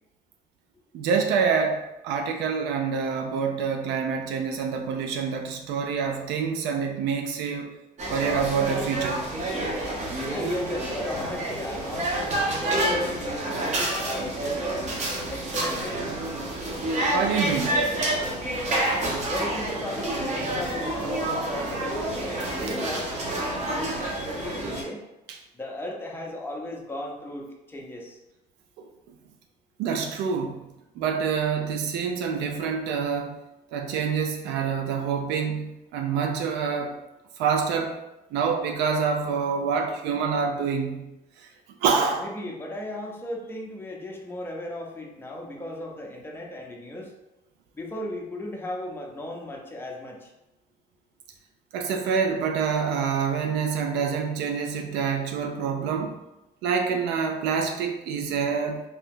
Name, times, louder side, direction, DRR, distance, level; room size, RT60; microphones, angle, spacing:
voice 1, 0.9-7.7 8.1-9.3 17.1-17.8 25.3-25.4 29.8-30.6 31.0-33.3 33.7-36.9 37.4-38.0 38.3-41.1 41.8-42.3 51.7-56.1 56.6-58.8, right 6 dB, 85° right, 4 dB, 0.4 m, -26 dB
sound 1, 8.0-24.8, right 1 dB, 45° right, 0.8 m, -28 dB
voice 2, 10.3-14.8 15.3-16.0 19.3-25.0 25.5-28.2 42.2-47.1 47.7-50.3, left 1 dB, 15° left, 0 dB, 0.5 m, -36 dB
2.8 x 2.2 x 3.5 m, 0.95 s
cardioid pair, 110°, 17 cm